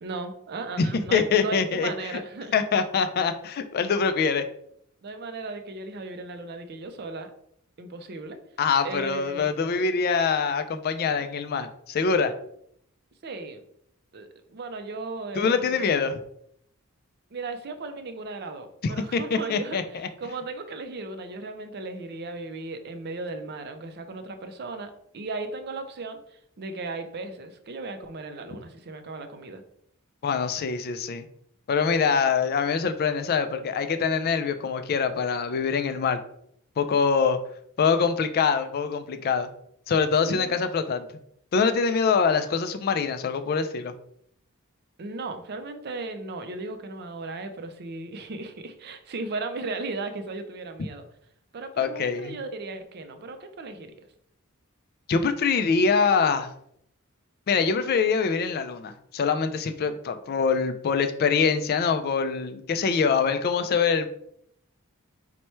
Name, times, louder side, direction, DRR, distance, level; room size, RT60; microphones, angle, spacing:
voice 1, 0.0-2.5 5.0-7.3 7.8-8.4 8.8-9.5 13.2-13.6 14.1-16.0 17.3-29.6 40.2-40.7 45.0-51.0 51.5-53.9, right 3 dB, 50° right, 7 dB, 0.4 m, -36 dB
voice 2, 1.1-1.9 2.5-4.4 8.6-12.3 15.4-16.2 18.8-19.8 30.2-31.3 31.7-36.2 36.8-37.4 37.8-39.5 39.9-41.1 41.5-43.9 51.8-52.4 55.1-56.5 57.5-64.1, left 5 dB, 45° left, 9 dB, 0.3 m, -24 dB
4.4 x 2.2 x 4.2 m, 0.70 s
head